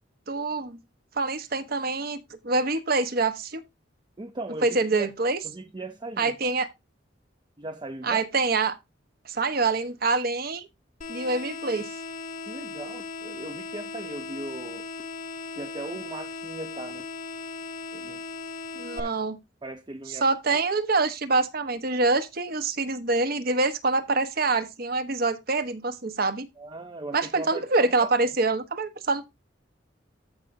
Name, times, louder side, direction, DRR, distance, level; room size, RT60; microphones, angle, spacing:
voice 1, 0.3-0.8 1.1-2.2 2.4-3.6 4.6-5.4 6.2-6.7 8.0-8.7 9.2-10.7 11.1-11.9 18.7-19.4 20.1-26.5 27.1-29.2, right 3 dB, 55° right, 1.0 m, -25 dB
voice 2, 4.2-5.1 5.4-6.5 7.6-8.2 12.5-14.9 15.5-17.1 17.9-18.2 18.9-19.2 19.6-20.6 26.6-28.1, right 2 dB, 25° right, 0.6 m, -38 dB
sound 1, 11.0-19.0, left 3 dB, 40° left, 0.9 m, -38 dB
14.0 x 5.2 x 2.6 m
head